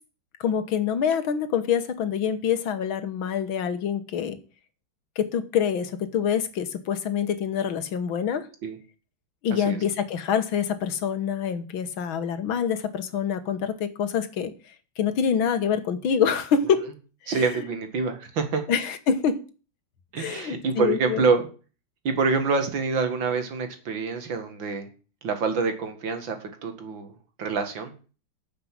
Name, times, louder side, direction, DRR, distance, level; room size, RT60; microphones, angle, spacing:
voice 1, 0.4-4.4 5.2-8.5 9.4-14.5 15.0-16.8 17.2-17.6 18.7-19.4 20.2-21.3, left 7 dB, 85° left, 2.1 m, -26 dB
voice 2, 9.5-9.8 17.3-18.6 20.1-21.5 22.0-24.9 25.2-27.1 27.4-27.9, right 4 dB, 70° right, 2.5 m, -26 dB
9.8 x 6.8 x 7.3 m
omnidirectional pair, 2.2 m